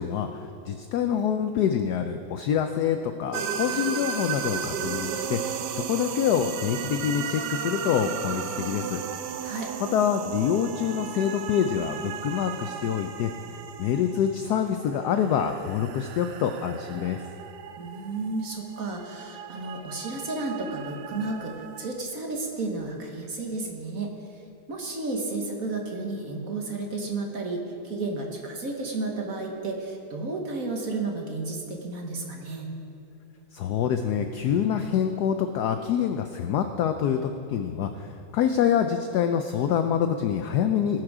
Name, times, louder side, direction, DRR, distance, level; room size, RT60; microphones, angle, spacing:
voice 1, 0.0-9.0 9.8-13.3 13.8-17.2 33.5-41.0, left 8 dB, 80° left, 7 dB, 0.8 m, -26 dB
sound 1, 3.3-22.0, right 8 dB, 70° right, 1.0 m, -35 dB
voice 2, 17.8-24.1 24.7-32.7, right 3 dB, 45° right, 1 dB, 1.5 m, -32 dB
18.5 x 6.3 x 4.8 m, 2.7 s
omnidirectional pair, 2.2 m